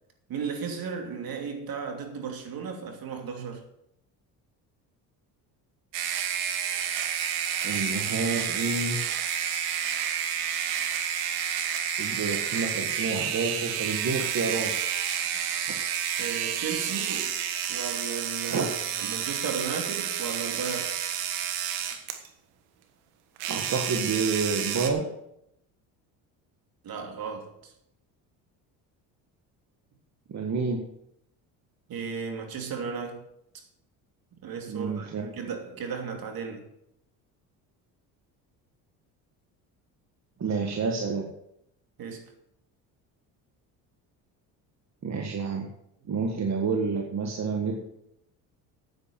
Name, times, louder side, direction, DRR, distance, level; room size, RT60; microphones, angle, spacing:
voice 1, 0.3-3.6 16.2-17.4 17.7-21.0 26.8-27.7 31.9-33.2 34.4-36.7 42.0-42.3, right 6 dB, 55° right, 2.9 m, -35 dB
sound 1, 5.9-22.3 23.4-24.9, right 9 dB, 90° right, 1.5 m, -30 dB
voice 2, 7.6-9.0 12.0-14.7 18.5-18.6 23.4-25.1 30.3-30.8 34.7-35.2 40.4-41.3 45.0-45.7 46.1-47.7, right 4 dB, 40° right, 1.7 m, -29 dB
8.8 x 8.7 x 7.7 m
supercardioid pair, 90°, 42 cm